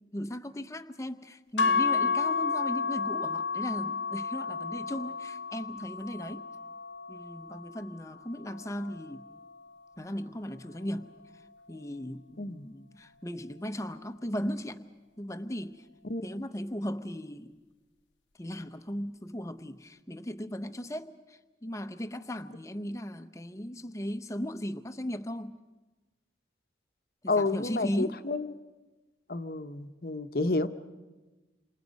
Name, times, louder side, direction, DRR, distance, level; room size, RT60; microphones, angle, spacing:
voice 1, 0.1-6.4 7.1-9.3 10.0-11.1 11.7-14.8 15.2-15.8 16.2-17.5 18.4-25.6 27.2-28.2, equal, 15° left, 0.8 m, -37 dB
sound 1, 1.6-9.8, left 5 dB, 85° left, 0.8 m, -32 dB
voice 2, 27.3-28.5 29.3-30.7, left 3 dB, 55° left, 0.9 m, -30 dB
28.0 x 26.5 x 5.3 m
head